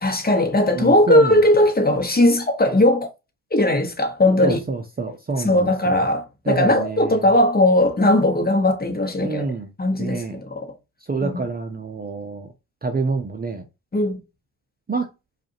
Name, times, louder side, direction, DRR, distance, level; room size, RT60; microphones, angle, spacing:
voice 1, 0.0-3.1 3.5-4.6 5.4-9.5 9.8-10.7 11.2-11.4 13.9-14.2, left 1 dB, 20° left, 1.1 m, -18 dB
voice 2, 0.7-1.4 4.4-6.0 6.5-7.2 9.2-9.7 10.0-10.4 11.1-12.5 12.8-13.6 14.9-15.1, right 3 dB, 20° right, 0.7 m, -27 dB
4.8 x 2.5 x 2.8 m
hypercardioid pair, 60°, 45 cm